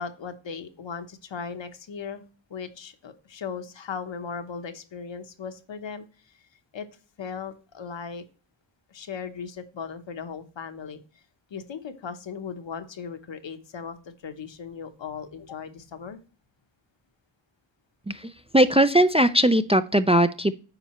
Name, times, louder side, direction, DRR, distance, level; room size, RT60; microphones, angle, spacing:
voice 1, 0.0-2.2 2.5-6.1 6.7-6.9 7.2-8.3 8.9-11.0 11.5-14.0 14.2-16.2, left 6 dB, 75° left, 8 dB, 1.0 m, -37 dB
voice 2, 18.1-20.5, right 1 dB, 15° right, 10 dB, 0.3 m, -20 dB
8.9 x 5.5 x 3.0 m, 0.37 s
wide cardioid pair, 95°, 45 cm